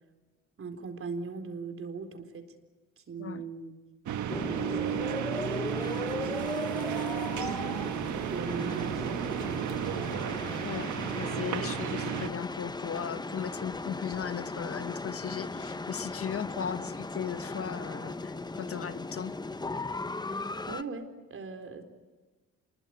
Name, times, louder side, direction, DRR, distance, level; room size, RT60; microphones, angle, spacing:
voice 1, 0.6-2.5 3.0-3.7 4.1-5.7 6.1-7.9 8.3-10.1 20.3-21.8, right 4 dB, 45° right, 6 dB, 4.2 m, -41 dB
sound 1, 4.1-12.3, right 10 dB, 75° right, 1.6 m, -33 dB
sound 2, 4.3-20.8, left 3 dB, 15° left, 0.9 m, -37 dB
voice 2, 10.6-19.3, left 8 dB, 50° left, 12 dB, 1.2 m, -37 dB
27.0 x 22.0 x 9.6 m, 1.3 s
cardioid pair, 90°, 30 cm